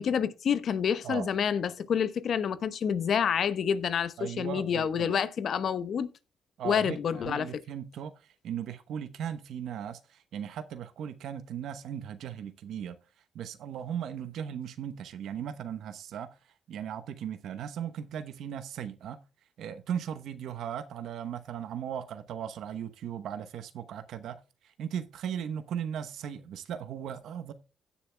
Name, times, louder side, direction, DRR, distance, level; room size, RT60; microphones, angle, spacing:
voice 1, 0.0-6.1 6.6-7.5, left 7 dB, 60° left, 1.0 m, -28 dB
voice 2, 4.2-5.2 6.6-13.0 13.3-16.3 16.7-19.2 19.6-24.4 24.6-27.5, right 9 dB, 75° right, 0.9 m, -37 dB
16.5 x 7.1 x 2.2 m
cardioid pair, 90°, 0 cm